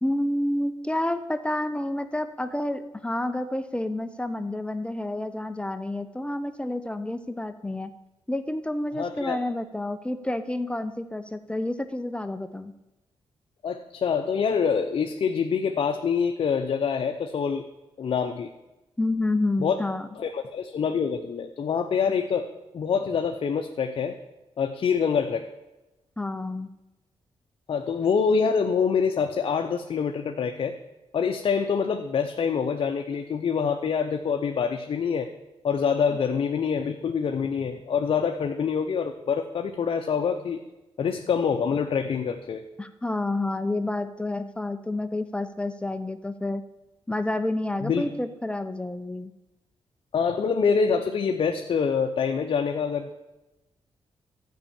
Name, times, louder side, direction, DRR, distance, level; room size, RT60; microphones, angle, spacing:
voice 1, 0.0-7.9 8.3-12.7 19.0-20.1 26.2-26.7 42.8-46.6 47.1-49.3, left 1 dB, 10° left, 10 dB, 0.7 m, -29 dB
voice 2, 9.0-9.4 13.6-17.6 18.0-18.5 19.6-19.8 20.2-22.5 22.7-24.2 24.6-25.5 27.7-30.7 31.1-35.3 35.6-40.6 41.0-42.6 47.8-48.1 50.1-53.1, left 6 dB, 60° left, 5 dB, 0.8 m, -25 dB
12.0 x 5.5 x 8.8 m, 1.0 s
cardioid pair, 80°, 10 cm